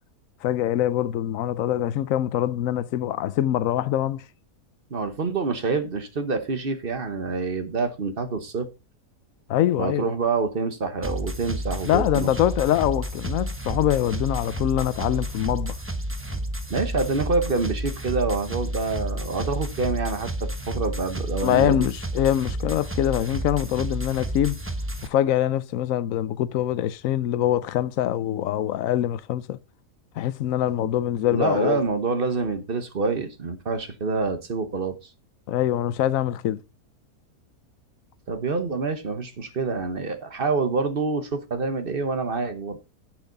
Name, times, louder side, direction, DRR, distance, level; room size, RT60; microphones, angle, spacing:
voice 1, 0.4-4.2 9.5-10.1 11.9-15.8 21.4-24.6 25.0-29.6 30.2-31.8 35.5-36.6, left 12 dB, 65° left, 1.0 m, -24 dB
voice 2, 4.9-8.7 9.8-12.3 16.7-21.9 31.3-35.0 38.3-42.8, right 4 dB, 40° right, 1.2 m, -27 dB
sound 1, 11.0-25.1, right 1 dB, 10° right, 0.7 m, -31 dB
10.5 x 7.7 x 3.9 m
omnidirectional pair, 1.7 m